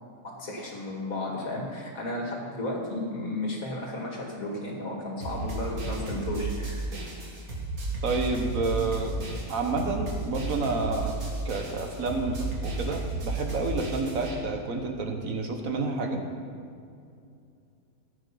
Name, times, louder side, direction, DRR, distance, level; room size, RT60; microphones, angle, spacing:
voice 1, 0.2-6.9, left 1 dB, 75° left, -1 dB, 2.5 m, -33 dB
sound 1, 5.2-14.3, right 2 dB, 90° right, 2.4 m, -33 dB
voice 2, 8.0-9.1 9.5-11.2 11.4-16.2, right 3 dB, 70° right, 4 dB, 1.6 m, -29 dB
14.5 x 8.8 x 5.6 m, 2.4 s
omnidirectional pair, 1.5 m